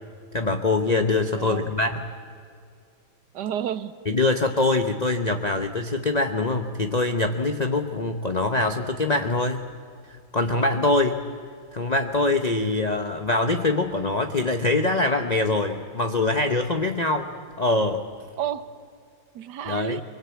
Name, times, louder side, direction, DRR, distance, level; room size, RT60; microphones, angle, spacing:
voice 1, 0.3-2.1 4.1-9.7 10.3-11.2 11.7-18.0 19.7-20.0, left 2 dB, 45° left, 6 dB, 0.5 m, -24 dB
voice 2, 1.4-1.7 3.3-4.0 18.4-18.8 19.3-20.0, right 10 dB, 65° right, 14 dB, 1.3 m, -31 dB
24.5 x 22.0 x 8.5 m, 2.2 s
omnidirectional pair, 2.2 m